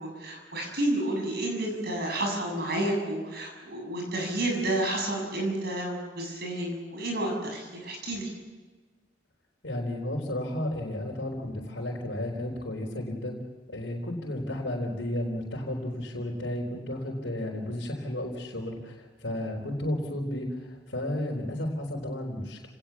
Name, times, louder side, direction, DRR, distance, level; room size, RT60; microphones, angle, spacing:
voice 1, 0.0-8.3, right 1 dB, 60° right, 2 dB, 7.4 m, -30 dB
voice 2, 9.6-13.4 13.7-22.7, left 1 dB, 75° left, -3 dB, 4.0 m, -33 dB
30.0 x 19.0 x 7.3 m, 1.3 s
head